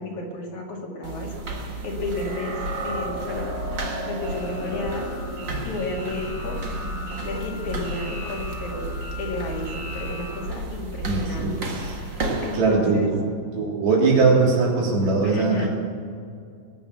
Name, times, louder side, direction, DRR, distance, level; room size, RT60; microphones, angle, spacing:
voice 1, 0.0-1.4 1.6-3.5 4.1-5.1 5.6-6.6 7.2-8.9 9.2-11.5 11.9-13.1 15.2-15.7, left 2 dB, 55° left, -1 dB, 3.5 m, -32 dB
sound 1, 1.0-12.6, right 1 dB, 45° right, 1.6 m, -33 dB
sound 2, 2.1-10.4, equal, 65° right, 5.6 m, -35 dB
voice 2, 11.0-12.0 12.5-13.2 13.5-15.7, right 4 dB, 85° right, -3 dB, 5.2 m, -21 dB
20.0 x 9.1 x 7.0 m, 2.3 s
omnidirectional pair, 4.2 m